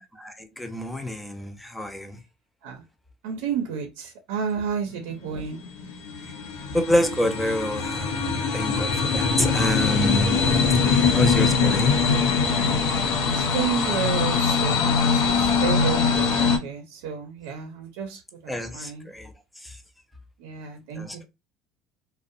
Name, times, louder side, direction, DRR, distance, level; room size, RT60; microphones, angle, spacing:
voice 1, 0.1-2.2 6.7-10.5 10.9-12.0 18.5-19.8 21.0-21.3, left 1 dB, 5° left, 0.3 m, -28 dB
voice 2, 3.2-5.6 13.3-19.1 20.4-21.1, right 7 dB, 90° right, 0.5 m, -31 dB
sound 1, 5.0-16.6, left 5 dB, 75° left, 0.5 m, -22 dB
2.6 x 2.0 x 2.4 m
cardioid pair, 170°, 0 cm